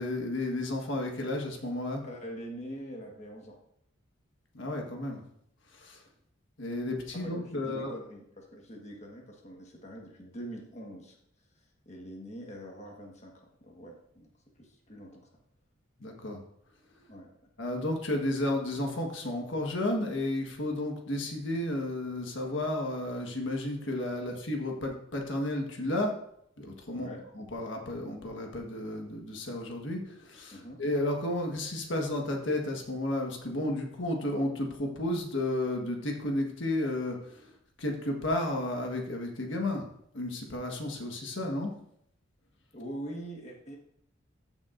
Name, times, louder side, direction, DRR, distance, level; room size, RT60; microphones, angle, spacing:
voice 1, 0.0-2.0 4.5-5.2 5.7-6.0 6.6-8.0 16.0-16.4 17.6-26.2 26.6-27.1 27.3-39.9 40.1-41.7, left 1 dB, 65° left, 2 dB, 1.4 m, -32 dB
voice 2, 2.0-3.6 7.2-11.1 11.8-14.3 14.6-15.3 17.1-17.3 24.2-24.3 26.9-27.3 30.5-30.8 42.7-43.8, equal, 35° left, 0 dB, 1.4 m, -44 dB
14.5 x 7.1 x 2.6 m, 0.73 s
head